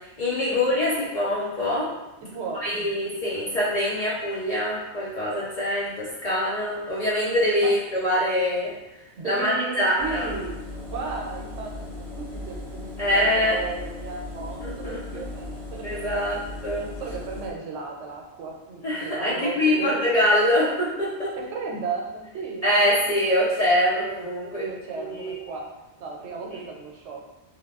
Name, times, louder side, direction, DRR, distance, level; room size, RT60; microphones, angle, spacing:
voice 1, 0.0-1.9 2.6-8.7 9.2-10.3 13.0-13.6 14.6-15.2 15.8-16.9 18.8-21.3 22.6-24.6 24.9-25.3 26.5-26.6, left 1 dB, 50° left, -7 dB, 0.4 m, -24 dB
voice 2, 2.2-3.1 7.6-7.8 9.2-10.5 10.9-15.8 16.3-16.4 17.0-19.9 21.4-22.7 24.6-25.7 26.0-27.2, right 4 dB, 90° right, 0 dB, 0.9 m, -35 dB
Engine, 10.0-17.5, left 2 dB, ahead, 0.6 m, -37 dB
2.8 x 2.2 x 2.3 m, 1.0 s
omnidirectional pair, 1.2 m